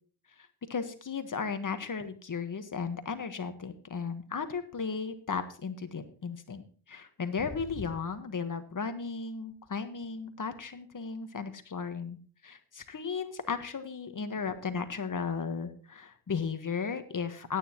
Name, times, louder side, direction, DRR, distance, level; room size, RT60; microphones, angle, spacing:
voice 1, 0.7-6.6 6.9-12.2 12.4-17.6, left 5 dB, 40° left, 9 dB, 1.4 m, -35 dB
15.0 x 9.6 x 3.0 m, 0.42 s
cardioid pair, 65°, 50 cm